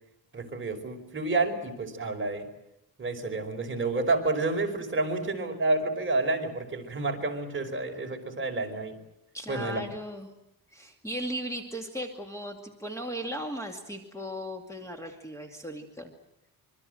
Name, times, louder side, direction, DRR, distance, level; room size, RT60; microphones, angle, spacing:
voice 1, 0.3-2.5 3.0-9.0 9.5-9.8, right 2 dB, 30° right, 2 dB, 4.9 m, -29 dB
voice 2, 9.3-10.3 10.7-16.1, equal, 10° left, 2 dB, 2.3 m, -37 dB
26.0 x 24.0 x 7.8 m, 0.86 s
wide cardioid pair, 145°, 38 cm